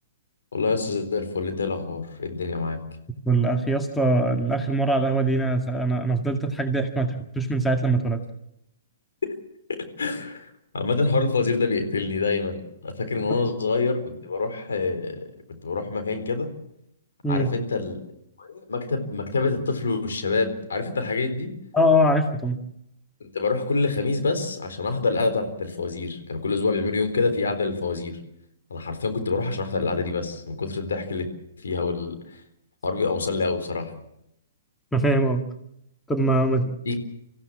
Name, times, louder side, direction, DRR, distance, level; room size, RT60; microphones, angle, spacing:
voice 1, 0.5-2.8 9.2-9.3 9.7-15.3 15.6-16.5 17.3-18.0 18.4-21.5 23.2-28.2 28.7-31.3 31.6-32.4 32.8-33.9 36.9-37.0, left 3 dB, 75° left, 7 dB, 4.1 m, -26 dB
voice 2, 3.3-8.2 17.2-17.5 21.7-22.6 34.9-35.4 36.1-36.7, right 1 dB, 10° left, 5 dB, 2.1 m, -22 dB
25.5 x 15.5 x 7.4 m, 0.79 s
hypercardioid pair, 125°, 0 cm